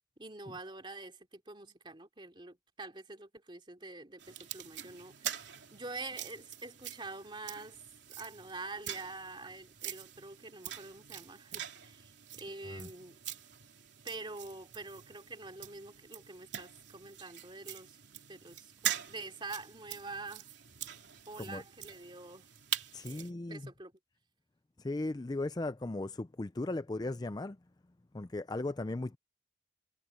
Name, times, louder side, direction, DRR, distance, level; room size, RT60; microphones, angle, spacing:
voice 1, 0.2-7.8 8.1-12.1 12.4-13.2 14.0-18.0 18.3-20.5 21.3-22.5 23.0-23.9, right 3 dB, 25° right, 3.0 m, -46 dB
sound 1, 4.2-23.3, right 10 dB, 75° right, 3.2 m, -44 dB
voice 2, 22.9-23.7 24.8-27.6 28.1-29.2, left 2 dB, 20° left, 0.4 m, -37 dB
head